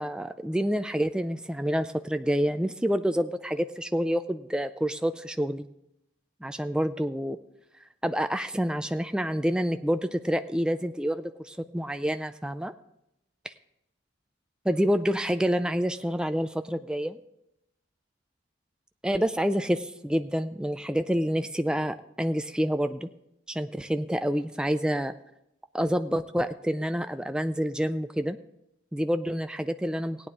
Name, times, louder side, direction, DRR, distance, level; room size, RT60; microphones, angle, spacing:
voice 1, 0.0-5.6 6.4-7.4 8.0-12.7 14.7-17.2 19.0-23.1 23.5-25.1 25.7-28.4 28.9-30.2, equal, 5° right, 9 dB, 0.3 m, -28 dB
17.0 x 9.2 x 3.7 m, 0.85 s
head